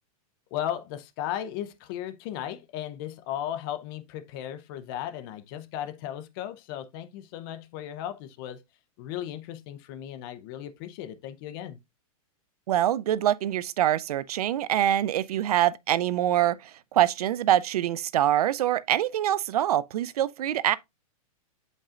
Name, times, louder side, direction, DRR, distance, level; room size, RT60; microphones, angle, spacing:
voice 1, 0.5-8.6 9.0-11.8, left 11 dB, 35° left, 0.6 m, -36 dB
voice 2, 12.7-20.8, right 12 dB, 85° right, 0.5 m, -25 dB
8.4 x 5.3 x 2.4 m
supercardioid pair, 160°, 19 cm